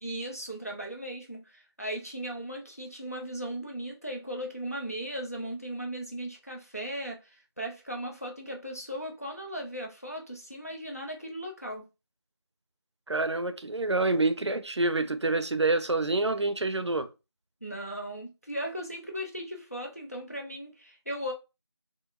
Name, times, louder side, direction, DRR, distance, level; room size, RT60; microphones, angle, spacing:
voice 1, 0.0-11.9 17.6-21.3, right 1 dB, 35° left, 0.5 m, -37 dB
voice 2, 13.1-17.1, right 2 dB, 80° right, 0.5 m, -27 dB
3.9 x 2.0 x 2.4 m
figure-of-eight pair, 175°, 14 cm